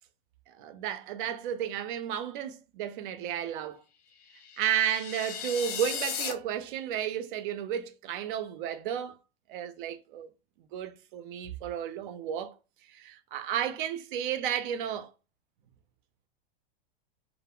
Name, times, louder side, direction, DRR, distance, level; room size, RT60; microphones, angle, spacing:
voice 1, 0.6-3.8 4.6-9.1 9.5-10.3 10.7-12.5 12.9-15.1, right 9 dB, 60° right, 0.5 m, -33 dB
sound 1, 4.3-6.3, left 8 dB, 40° left, 0.5 m, -36 dB
2.3 x 2.0 x 3.4 m
supercardioid pair, 150°, 30 cm